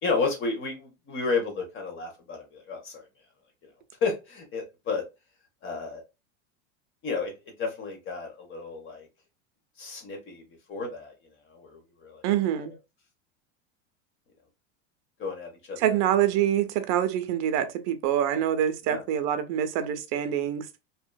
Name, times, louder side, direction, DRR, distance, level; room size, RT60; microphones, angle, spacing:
voice 1, 0.0-3.0 4.0-5.0 5.6-6.0 7.0-7.3 7.6-9.1 9.8-10.4 10.7-11.1 11.5-12.2 15.2-15.8 18.8-19.0, left 4 dB, 35° left, 1.1 m, -32 dB
voice 2, 12.2-12.7 15.8-20.7, right 10 dB, 50° right, 0.6 m, -25 dB
2.8 x 2.4 x 2.2 m
supercardioid pair, 140°, 34 cm